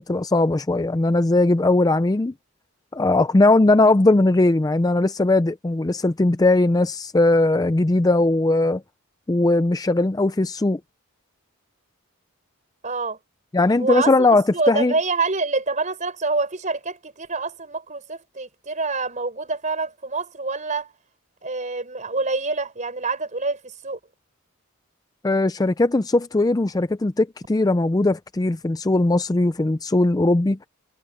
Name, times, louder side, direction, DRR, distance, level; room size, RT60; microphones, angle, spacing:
voice 1, 0.0-2.3 2.9-8.8 9.3-10.8 13.5-14.9 25.2-30.6, left 2 dB, 15° left, 0.4 m, -19 dB
voice 2, 12.8-13.2 13.8-14.3 14.5-20.9 21.4-24.0, right 3 dB, 35° right, 4.8 m, -26 dB
head